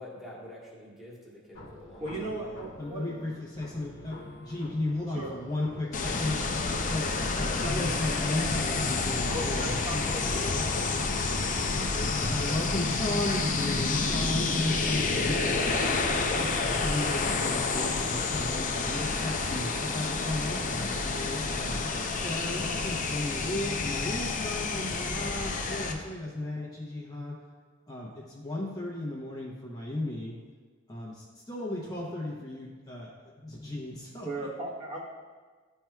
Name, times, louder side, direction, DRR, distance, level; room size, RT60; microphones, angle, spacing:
voice 1, 0.0-2.3 12.3-12.7, left 1 dB, ahead, -5 dB, 1.3 m, -46 dB
sound 1, 1.5-17.5, left 1 dB, 70° left, 1.0 m, -47 dB
voice 2, 2.0-3.1 5.1-5.3 9.3-11.0 11.8-11.9 34.2-35.0, right 1 dB, 35° right, -5 dB, 1.2 m, -37 dB
voice 3, 2.8-6.3 6.9-10.8 12.2-15.5 16.1-21.8 22.1-27.3 27.9-30.3 30.9-33.1 33.4-34.5, left 1 dB, 20° left, -4 dB, 0.8 m, -35 dB
sound 2, 5.9-25.9, left 3 dB, 40° left, 0.5 m, -29 dB
11.0 x 4.4 x 2.3 m, 1.4 s
head